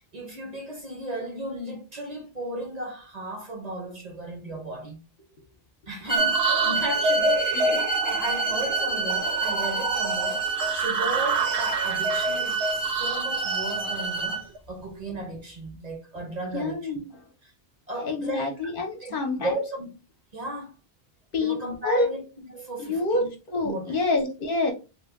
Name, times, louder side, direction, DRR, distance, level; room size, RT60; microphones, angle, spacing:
voice 1, 0.1-5.0 5.9-16.9 17.4-17.5 17.9-18.7 19.0-19.9 20.3-20.7 21.4-23.3 23.6-24.0, right 1 dB, 45° right, 0.8 m, -35 dB
sound 1, 6.1-14.4, right 5 dB, 5° right, 0.5 m, -27 dB
sound 2, 6.2-14.6, right 2 dB, 80° right, 0.8 m, -29 dB
voice 2, 16.5-17.0 18.0-19.5 21.3-21.6 21.8-22.1 22.8-24.7, left 2 dB, 60° left, 0.9 m, -27 dB
3.0 x 2.2 x 3.3 m
omnidirectional pair, 1.1 m